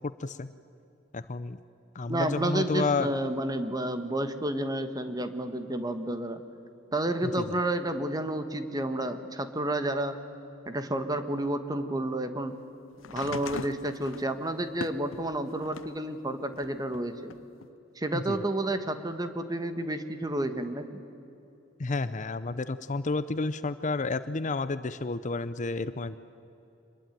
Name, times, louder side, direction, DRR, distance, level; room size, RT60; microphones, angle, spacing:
voice 1, 1.1-1.6 1.9-3.1 7.2-7.6 18.1-18.4 21.8-26.2, left 3 dB, 40° left, 14 dB, 0.6 m, -31 dB
voice 2, 2.1-6.4 6.9-10.2 10.7-12.5 13.1-17.3 18.0-21.0, right 1 dB, 20° right, 9 dB, 1.4 m, -30 dB
sound 1, 13.0-16.0 16.5-17.7 18.7-18.8, left 5 dB, 80° left, 0.7 m, -41 dB
25.5 x 21.5 x 9.2 m, 2.9 s
head